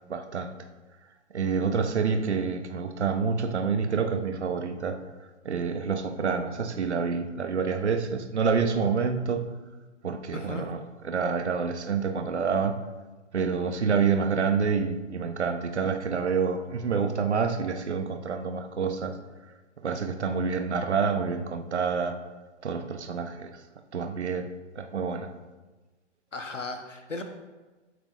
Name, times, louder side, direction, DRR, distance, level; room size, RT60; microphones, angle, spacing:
voice 1, 0.1-0.5 1.3-5.0 5.4-9.4 10.0-10.8 11.0-12.8 13.3-19.1 19.8-22.2 22.6-23.5 23.9-24.5 24.7-25.3, right 5 dB, 65° right, 7 dB, 1.2 m, -27 dB
voice 2, 10.3-10.7 19.9-20.0 26.3-27.2, left 3 dB, 85° left, 5 dB, 1.4 m, -36 dB
15.0 x 8.0 x 2.7 m, 1.2 s
figure-of-eight pair, 120°, 36 cm